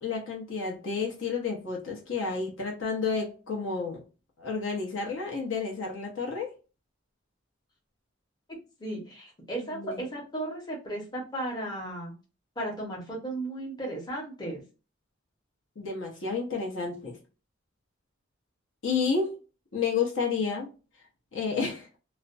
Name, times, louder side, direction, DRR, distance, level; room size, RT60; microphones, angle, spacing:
voice 1, 0.0-4.0 4.4-6.5 9.7-10.0 15.8-17.1 18.8-19.4 19.7-20.7 21.3-21.9, left 5 dB, 70° left, 0.8 m, -30 dB
voice 2, 8.8-12.1 12.6-14.6, right 1 dB, 20° left, 0.9 m, -35 dB
2.4 x 2.1 x 2.5 m
head